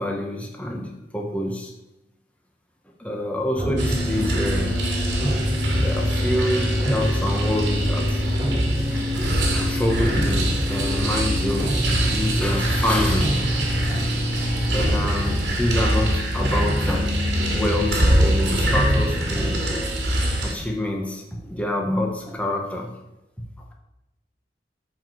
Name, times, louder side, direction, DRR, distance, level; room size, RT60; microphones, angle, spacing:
voice 1, 0.0-1.7 3.0-4.8 5.8-8.2 8.9-13.3 13.9-14.1 14.7-17.1 17.5-19.9 20.4-22.9, left 1 dB, 10° left, 0 dB, 1.5 m, -27 dB
sound 1, 3.5-18.0, equal, 25° right, 2.1 m, -26 dB
sound 2, 3.8-20.5, right 1 dB, 90° right, 2.5 m, -24 dB
8.5 x 5.3 x 6.4 m, 0.92 s
head